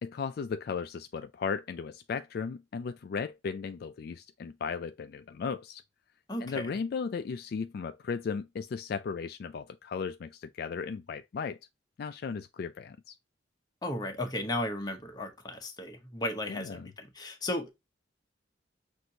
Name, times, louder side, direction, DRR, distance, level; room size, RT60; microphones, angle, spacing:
voice 1, 0.0-5.8 6.4-11.6 12.0-13.2 16.5-16.9, left 5 dB, 55° left, 0.3 m, -36 dB
voice 2, 6.3-6.7 13.8-17.7, left 1 dB, 20° left, 0.9 m, -35 dB
6.0 x 2.6 x 2.7 m
head